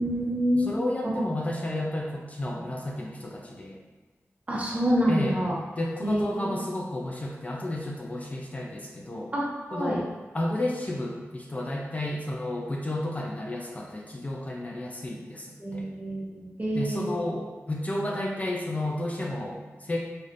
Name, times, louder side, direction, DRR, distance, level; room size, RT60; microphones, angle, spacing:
voice 1, 0.0-0.7 1.0-1.2 4.5-5.5 6.0-6.5 9.3-10.0 15.6-17.2, equal, 30° right, -5 dB, 1.0 m, -27 dB
voice 2, 0.6-3.8 5.1-5.4 5.8-9.3 9.7-10.0 10.3-15.9 16.7-20.0, left 1 dB, 30° left, -1 dB, 0.4 m, -32 dB
4.1 x 3.2 x 2.5 m, 1.2 s
wide cardioid pair, 80°, 5 cm